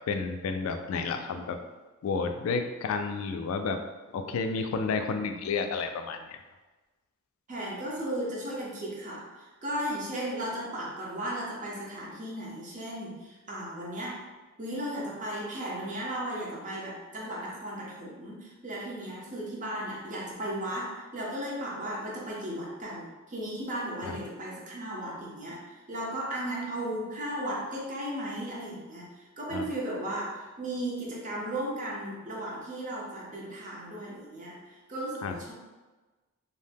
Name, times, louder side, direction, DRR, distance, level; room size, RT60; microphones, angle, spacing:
voice 1, 0.0-1.6 2.0-3.8 4.1-6.4 24.0-24.2 29.5-29.6 35.2-35.4, left 4 dB, 70° left, 7 dB, 0.3 m, -31 dB
voice 2, 7.5-14.2 14.6-34.6 34.9-35.5, right 1 dB, 35° right, -4 dB, 0.7 m, -35 dB
2.6 x 2.1 x 3.3 m, 1.2 s
head